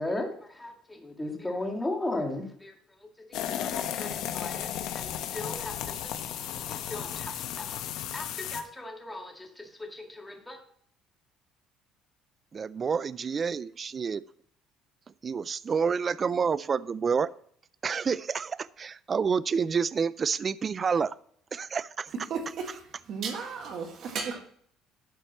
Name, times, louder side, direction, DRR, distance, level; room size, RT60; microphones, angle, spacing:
voice 1, 0.0-2.7 3.2-6.2 6.7-7.8 8.1-10.6, left 2 dB, 10° left, 2 dB, 2.0 m, -37 dB
sound 1, 3.3-8.6, left 10 dB, 70° left, 1.0 m, -34 dB
voice 2, 12.5-14.2 15.2-17.3 17.8-21.1 21.5-22.1, right 6 dB, 30° right, 18 dB, 0.3 m, -28 dB
voice 3, 22.3-24.4, right 5 dB, 55° right, 4 dB, 1.6 m, -35 dB
12.0 x 4.6 x 7.0 m, 0.63 s
cardioid pair, 130°, 0 cm